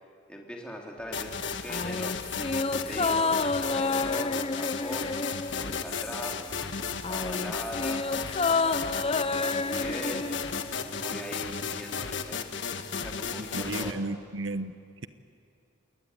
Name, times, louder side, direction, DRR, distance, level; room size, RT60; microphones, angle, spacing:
voice 1, 0.3-2.2 2.7-5.1 5.6-6.3 7.1-8.1 8.5-10.3 10.9-12.4 13.0-14.0, equal, 5° left, -1 dB, 3.5 m, -41 dB
sound 1, 1.1-13.9, left 6 dB, 70° left, 1.4 m, -34 dB
sound 2, 1.1-3.7 5.5-9.1 10.1-11.8, right 1 dB, 60° right, 1.9 m, -51 dB
sound 3, 1.7-6.4 6.7-11.0 11.3-11.4, left 3 dB, 30° left, 0.6 m, -30 dB
voice 2, 13.4-15.1, right 2 dB, 85° right, 12 dB, 1.1 m, -34 dB
27.5 x 21.0 x 9.9 m, 2.4 s
head